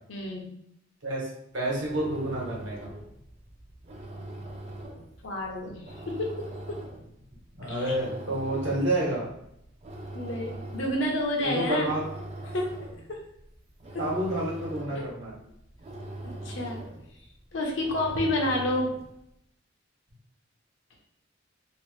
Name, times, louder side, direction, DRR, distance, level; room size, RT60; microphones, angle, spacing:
voice 1, 0.1-0.6 5.2-6.9 7.6-7.9 10.1-11.9 12.4-12.7 13.1-13.2 13.9-14.1 14.9-15.1 16.2-16.9 17.5-18.9, left 1 dB, 75° left, 0 dB, 0.7 m, -30 dB
voice 2, 1.0-2.9 7.5-9.3 11.4-12.0 14.0-15.3, right 1 dB, 70° right, -4 dB, 1.1 m, -29 dB
sound 1, 1.7-19.2, right 1 dB, 35° right, 0.4 m, -42 dB
2.8 x 2.1 x 3.1 m, 0.77 s
head